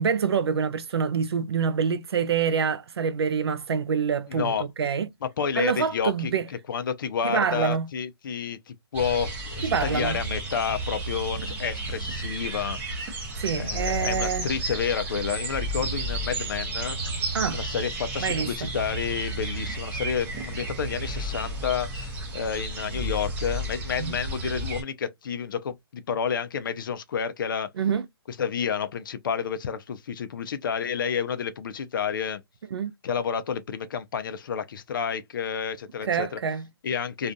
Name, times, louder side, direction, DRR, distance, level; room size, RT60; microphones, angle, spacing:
voice 1, 0.0-4.5 4.8-5.1 5.6-6.5 7.2-7.9 9.6-10.2 13.4-14.5 17.3-17.6 18.2-18.7 24.0-24.2 27.8-28.1 32.7-32.9 36.1-36.7, right 6 dB, 70° right, 0.5 m, -26 dB
voice 2, 4.3-4.7 5.2-6.3 6.7-13.1 13.5-17.0 17.5-27.7 28.3-32.4 33.0-36.4 36.8-37.3, left 7 dB, 50° left, 0.5 m, -30 dB
sound 1, 8.9-24.8, right 1 dB, 10° right, 0.6 m, -32 dB
2.4 x 2.3 x 2.5 m
hypercardioid pair, 150°, 14 cm